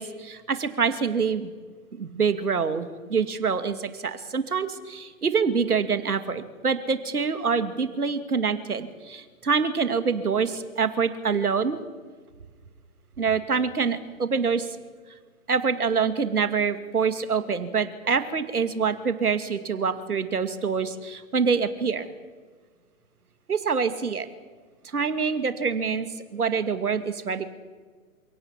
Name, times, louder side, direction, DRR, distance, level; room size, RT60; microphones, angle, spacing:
voice 1, 0.0-1.5 2.0-11.8 13.2-14.8 15.5-22.1 23.5-24.3 24.8-27.4, right 5 dB, 90° right, 10 dB, 2.5 m, -26 dB
29.0 x 17.5 x 7.5 m, 1.5 s
hypercardioid pair, 150°, 44 cm